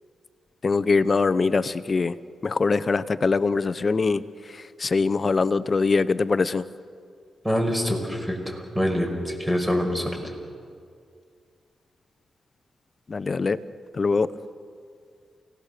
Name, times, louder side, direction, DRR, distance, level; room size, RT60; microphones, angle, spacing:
voice 1, 0.6-2.2 2.4-4.2 4.5-6.6 13.1-13.6 13.9-14.3, left 4 dB, 40° left, 15 dB, 0.8 m, -23 dB
voice 2, 7.4-10.2, equal, 10° right, 3 dB, 5.5 m, -25 dB
29.5 x 18.0 x 6.8 m, 2.2 s
cardioid pair, 70°, 0 cm